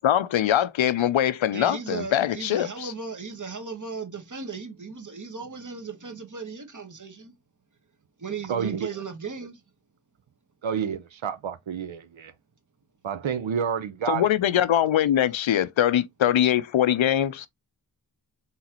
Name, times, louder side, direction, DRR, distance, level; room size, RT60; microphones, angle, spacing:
voice 1, 0.0-2.9 14.1-17.5, left 11 dB, 85° left, 0.5 m, -22 dB
voice 2, 1.5-7.3 8.2-9.5, right 5 dB, 40° right, 1.2 m, -36 dB
voice 3, 8.5-9.0 10.6-12.3 13.0-14.3, right 7 dB, 85° right, 0.7 m, -29 dB
4.1 x 3.8 x 2.8 m
wide cardioid pair, 55°, 45 cm